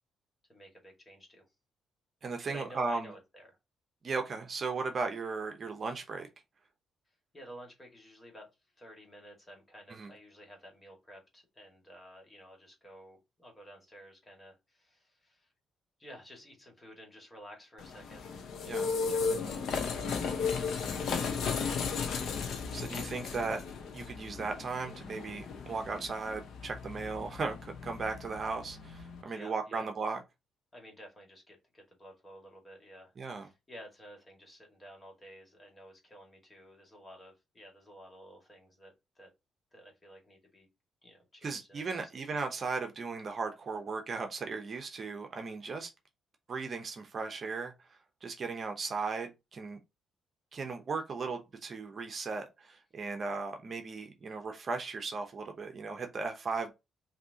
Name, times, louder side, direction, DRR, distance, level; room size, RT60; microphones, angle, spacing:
voice 1, 0.5-1.5 2.5-3.6 7.3-8.5 8.8-15.5 16.0-18.2 18.6-22.4 29.2-29.9 30.7-33.1 33.4-39.3 39.7-40.7 41.0-42.1, equal, 20° left, 2.0 m, -53 dB
voice 2, 2.2-3.1 4.0-6.3 9.9-10.1 18.7-18.9 22.7-23.6 23.9-30.2 33.2-33.5 41.4-45.9 46.5-47.7 48.2-49.8 50.5-56.7, right 4 dB, 45° right, 0.8 m, -36 dB
sound 1, 17.8-29.2, left 5 dB, 70° left, 0.8 m, -35 dB
5.7 x 2.8 x 2.9 m
cardioid pair, 90°, 0 cm